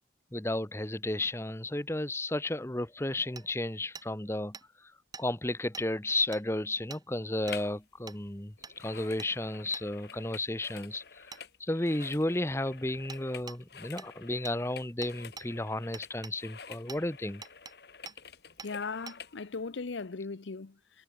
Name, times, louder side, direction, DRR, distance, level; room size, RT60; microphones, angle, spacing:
voice 1, 0.3-4.9 5.2-17.4, left 1 dB, 15° left, 0.9 m, -33 dB
Hammer, 3.4-3.5 3.9-4.1 4.5-4.6 5.1-5.3 5.7-5.9 6.3-6.4 6.9-7.0 7.5-7.6 8.1-8.2 8.6-8.8 9.2-9.3 9.7-9.9 11.3-11.4 13.1-13.2 13.5-13.6 14.0-14.1 14.4-14.6 15.0-15.5 15.9-16.4 16.9-17.0 17.4-17.7 18.1-18.2 18.6-18.7 19.1-19.2, right 5 dB, 20° right, 3.7 m, -45 dB
sound 1, 7.4-7.8 8.1-19.4 19.9-20.0, left 6 dB, 55° left, 1.2 m, -49 dB
voice 2, 18.6-21.0, left 4 dB, 80° left, 0.7 m, -38 dB
head